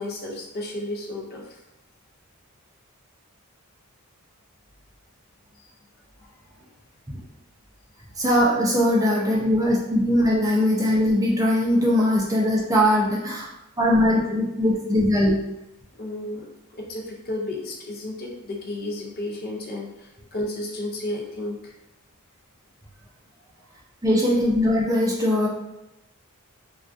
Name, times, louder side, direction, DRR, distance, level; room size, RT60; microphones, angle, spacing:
voice 1, 0.0-1.4 16.0-21.7, left 1 dB, 45° left, -1 dB, 0.5 m, -32 dB
voice 2, 8.2-13.5 13.8-15.3 24.0-25.5, left 1 dB, 15° right, -3 dB, 0.4 m, -20 dB
2.4 x 2.2 x 2.4 m, 0.89 s
head